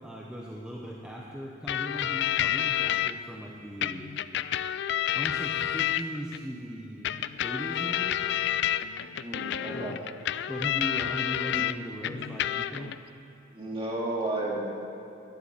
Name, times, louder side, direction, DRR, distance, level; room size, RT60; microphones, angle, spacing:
voice 1, 0.0-4.0 5.1-7.1 7.4-8.2 9.7-10.0 10.4-12.9, equal, 5° right, -3 dB, 0.9 m, -38 dB
sound 1, 1.7-3.1 3.8-6.4 7.0-11.7 12.0-13.0, left 11 dB, 60° left, 0.4 m, -29 dB
voice 2, 9.2-9.9 13.5-14.7, right 2 dB, 30° right, -3 dB, 2.4 m, -32 dB
13.0 x 10.0 x 6.8 m, 2.9 s
head